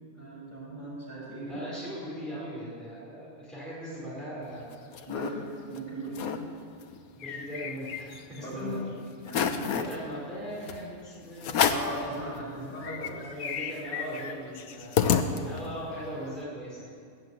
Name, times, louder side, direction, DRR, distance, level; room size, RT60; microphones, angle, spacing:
voice 1, 0.1-1.6 5.1-6.3 8.4-8.8 9.2-10.0 11.6-13.3, right 1 dB, 30° left, -6 dB, 5.8 m, -38 dB
voice 2, 1.4-5.0 7.2-8.9 9.6-11.9 12.4-17.0, equal, ahead, -8 dB, 4.9 m, -40 dB
sound 1, 4.5-5.3 5.7-5.8 6.1-6.4 6.8-8.4 8.8-8.9 9.3-10.0 10.7-10.8 11.4-12.0 12.5-12.6 12.8-15.8, left 7 dB, 75° left, 1.4 m, -30 dB
21.0 x 7.9 x 8.5 m, 2.4 s
omnidirectional pair, 1.5 m